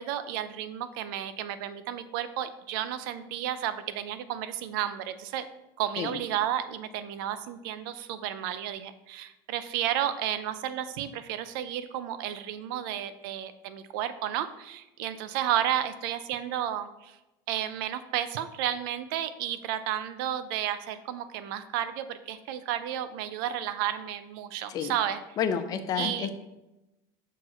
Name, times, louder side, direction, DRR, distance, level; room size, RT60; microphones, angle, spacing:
voice 1, 0.0-5.5 5.8-17.2 17.5-25.2 26.0-26.3, right 11 dB, 80° right, 12 dB, 0.5 m, -32 dB
voice 2, 25.4-26.3, left 7 dB, 35° left, 9 dB, 0.5 m, -30 dB
6.1 x 4.5 x 4.2 m, 0.96 s
cardioid pair, 160°, 11 cm